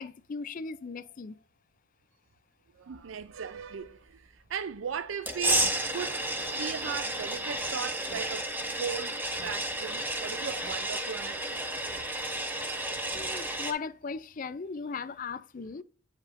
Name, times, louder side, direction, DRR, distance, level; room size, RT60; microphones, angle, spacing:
voice 1, 0.0-1.4 13.1-15.8, left 5 dB, 45° left, 0.4 m, -37 dB
voice 2, 2.7-8.5 8.8-11.5, right 7 dB, 85° right, 0.5 m, -38 dB
sound 1, 5.3-13.7, right 1 dB, 10° right, 1.2 m, -32 dB
9.7 x 5.2 x 2.6 m
head